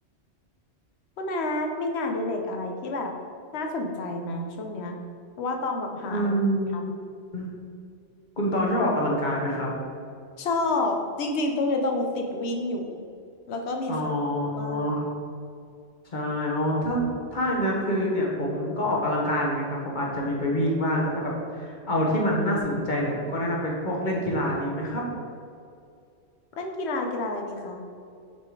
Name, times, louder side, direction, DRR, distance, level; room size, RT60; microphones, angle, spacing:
voice 1, 1.2-3.1 3.5-5.0 5.4-6.3 6.7-6.8 10.4-13.0 13.5-14.1 14.5-14.9 26.6-27.8, left 2 dB, 70° left, 3 dB, 1.0 m, -29 dB
voice 2, 6.0-6.9 7.3-7.5 8.4-9.7 13.9-15.1 16.1-17.0 17.3-25.0, equal, 45° left, -2 dB, 1.3 m, -26 dB
6.6 x 3.7 x 4.8 m, 2.4 s
omnidirectional pair, 1.2 m